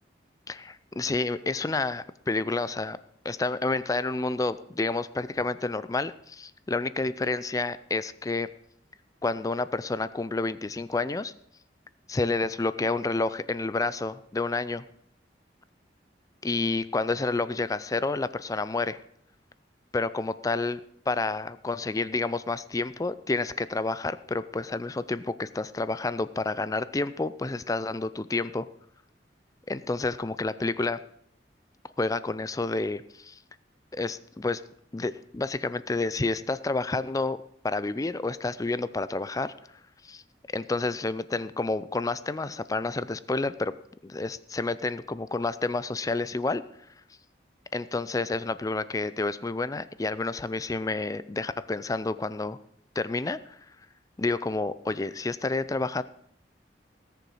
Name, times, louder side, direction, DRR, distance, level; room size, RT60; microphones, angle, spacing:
voice 1, 0.5-3.0 3.2-8.5 9.2-11.3 12.1-14.8 16.4-19.0 19.9-20.8 21.1-28.7 29.7-31.0 32.0-33.4 33.9-34.6 34.9-39.5 40.0-40.2 40.5-43.7 44.0-46.6 47.7-52.6 53.0-53.6 54.2-56.0, left 3 dB, 20° left, 15 dB, 0.4 m, -29 dB
18.0 x 6.8 x 4.8 m, 0.70 s
head